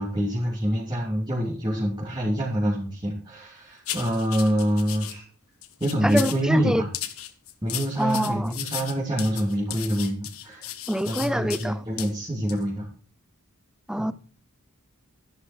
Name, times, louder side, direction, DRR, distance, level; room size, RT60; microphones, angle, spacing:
voice 1, 0.0-5.3 5.8-6.9 7.6-10.7 11.0-12.9 14.0-14.1, equal, 20° right, 3.4 m, -26 dB
sound 1, 3.8-5.1 5.6-6.4 6.9-11.7 12.0-12.1 12.5-12.6, left 12 dB, 70° left, 1.5 m, -35 dB
voice 2, 6.0-6.8 8.0-8.5 10.9-11.8 13.9-14.1, equal, 5° right, 0.6 m, -25 dB
13.5 x 11.5 x 4.6 m
head